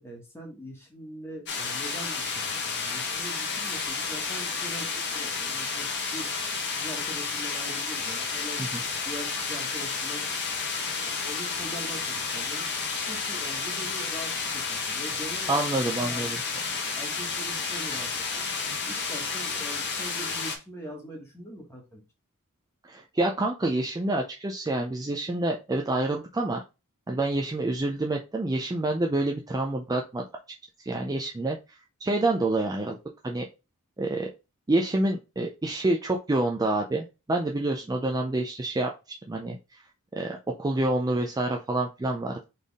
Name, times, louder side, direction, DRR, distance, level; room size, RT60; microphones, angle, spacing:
voice 1, 0.0-6.3 6.7-10.7 11.0-12.6 13.1-16.3 16.9-18.1 18.4-18.5 18.8-22.0, right 1 dB, 10° left, 0 dB, 1.6 m, -42 dB
sound 1, 1.5-20.6, left 4 dB, 50° left, 1.1 m, -31 dB
voice 2, 15.5-16.4 22.8-26.6 27.1-30.2 30.9-31.6 32.0-33.0 33.2-33.4 34.0-34.3 34.7-38.9 39.3-39.6 40.1-42.5, right 2 dB, 15° right, 1 dB, 0.4 m, -27 dB
4.2 x 3.4 x 3.5 m, 0.28 s
head